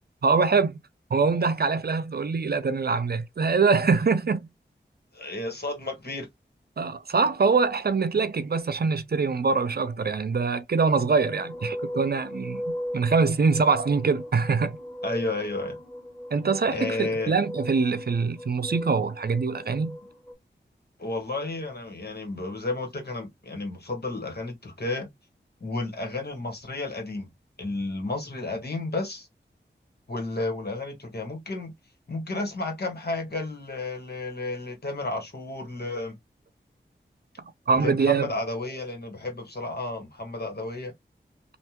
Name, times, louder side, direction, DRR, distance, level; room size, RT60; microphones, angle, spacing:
voice 1, 0.2-0.8 1.1-4.5 6.8-14.8 16.3-20.0 37.7-38.3, right 4 dB, 55° right, 0.5 m, -24 dB
voice 2, 5.1-6.3 15.0-15.8 16.7-17.4 21.0-25.1 25.6-27.3 27.6-29.3 30.1-31.7 32.1-36.1 37.7-40.9, left 2 dB, 55° left, 1.7 m, -32 dB
sound 1, 11.0-20.3, equal, 15° left, 2.0 m, -38 dB
3.3 x 2.6 x 2.9 m
cardioid pair, 45°, 19 cm